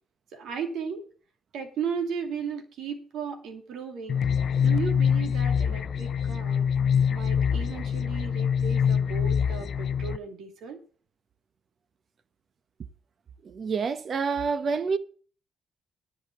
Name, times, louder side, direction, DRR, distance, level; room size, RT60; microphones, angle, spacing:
voice 1, 0.3-1.0 1.5-4.2 4.6-6.7 7.1-10.8, right 6 dB, 75° right, 2.5 m, -35 dB
sound 1, 4.1-10.2, left 7 dB, 55° left, 0.5 m, -25 dB
voice 2, 13.4-15.0, right 5 dB, 50° right, 0.9 m, -27 dB
10.5 x 5.7 x 8.4 m
cardioid pair, 90°, 0 cm